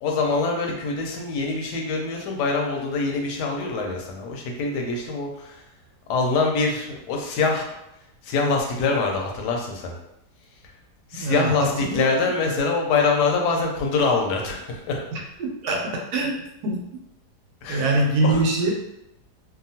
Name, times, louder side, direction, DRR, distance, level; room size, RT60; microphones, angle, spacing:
voice 1, 0.0-5.6 6.1-7.7 8.2-9.9 11.1-15.0 17.6-18.5, left 4 dB, 80° left, 1 dB, 1.2 m, -24 dB
voice 2, 11.1-11.5 11.9-12.1 15.4-16.3 16.6-16.8 17.7-18.7, right 2 dB, 75° right, 0 dB, 1.1 m, -23 dB
2.8 x 2.4 x 2.7 m, 0.84 s
omnidirectional pair, 1.8 m